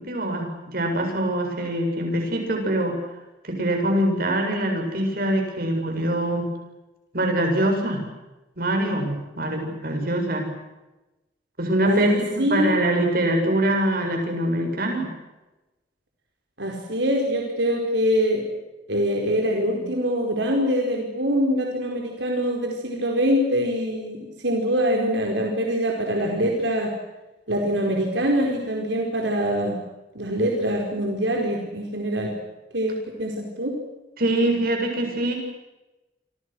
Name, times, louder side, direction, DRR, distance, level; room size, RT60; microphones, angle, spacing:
voice 1, 0.0-3.0 3.4-6.5 7.1-8.0 8.6-10.5 11.6-15.1 34.2-35.3, right 1 dB, 55° right, 3 dB, 8.0 m, -24 dB
voice 2, 11.8-12.7 16.6-18.4 18.9-26.9 27.5-29.7 30.1-32.3 32.7-33.7, equal, 85° right, 1 dB, 4.8 m, -24 dB
28.5 x 27.0 x 6.5 m, 1.0 s
head